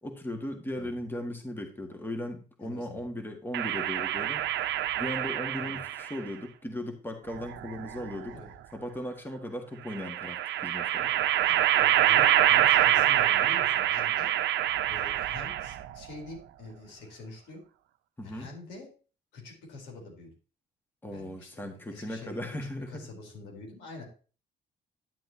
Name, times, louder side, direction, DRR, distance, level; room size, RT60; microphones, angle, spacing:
voice 1, 0.0-4.7 5.0-8.4 8.7-11.1 18.2-18.5 21.0-23.1, left 1 dB, 10° left, 4 dB, 1.8 m, -37 dB
voice 2, 2.6-3.0 5.6-5.8 8.3-8.5 11.4-14.3 14.9-17.6 18.2-18.9 19.3-20.3 21.1-24.1, left 3 dB, 85° left, 0 dB, 4.1 m, -46 dB
sound 1, 3.5-6.2 7.3-8.3 9.9-15.9, right 12 dB, 80° right, 0.7 m, -26 dB
11.0 x 7.6 x 2.9 m, 0.36 s
cardioid pair, 100°, 18 cm